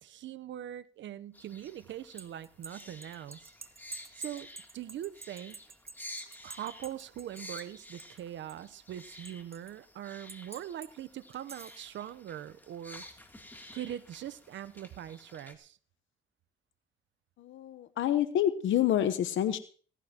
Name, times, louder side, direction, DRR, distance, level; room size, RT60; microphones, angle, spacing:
voice 1, 0.0-3.4 4.2-4.5 4.7-5.6 6.4-13.0 13.7-15.8, right 11 dB, 70° right, 16 dB, 0.8 m, -42 dB
sound 1, 1.3-15.5, left 1 dB, 10° left, 2.8 m, -51 dB
sound 2, 1.9-8.2 8.5-9.7 10.3-10.9 11.3-11.8, right 3 dB, 30° right, 1.3 m, -47 dB
voice 2, 17.4-19.6, left 11 dB, 75° left, 11 dB, 1.0 m, -28 dB
17.5 x 16.0 x 2.9 m, 0.43 s
cardioid pair, 90°, 20 cm